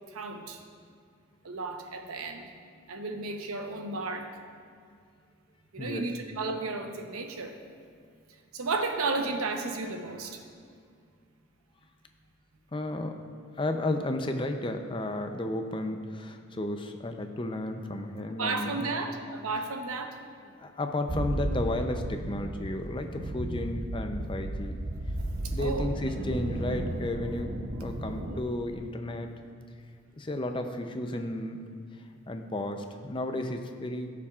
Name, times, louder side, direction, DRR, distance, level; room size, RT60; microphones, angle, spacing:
voice 1, 0.1-0.6 1.4-2.5 2.9-4.3 5.7-7.5 8.5-10.4 18.4-20.2 25.6-25.9, right 3 dB, 85° right, 4 dB, 0.9 m, -33 dB
voice 2, 12.7-13.2 13.5-18.9 20.6-24.8 25.5-27.5 27.8-29.3 30.2-31.6 32.3-34.1, left 1 dB, 25° left, 6 dB, 0.5 m, -33 dB
sound 1, 21.1-28.4, right 1 dB, 45° right, 0.6 m, -34 dB
16.5 x 7.1 x 2.4 m, 2.2 s
head